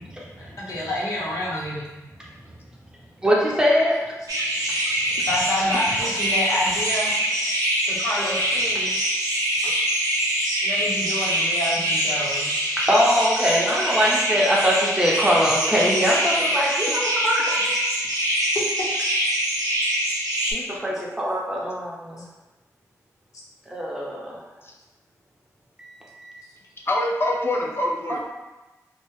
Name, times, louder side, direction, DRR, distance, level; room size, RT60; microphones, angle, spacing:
voice 1, 0.4-1.8 5.2-7.1 7.9-8.9 10.6-12.6 16.5-16.6 20.0-20.2 20.5-20.6 21.4-21.5, left 1 dB, 65° left, -6 dB, 0.8 m, -28 dB
voice 2, 3.2-3.9 12.9-17.6 20.5-21.9 23.7-24.1 28.1-28.2, equal, 10° right, -4 dB, 0.7 m, -21 dB
sound 1, 4.3-20.5, right 1 dB, 80° right, 0.6 m, -24 dB
voice 3, 26.9-28.2, left 1 dB, 40° left, -1 dB, 0.4 m, -25 dB
2.2 x 2.1 x 3.1 m, 1.1 s
cardioid pair, 55°, 6 cm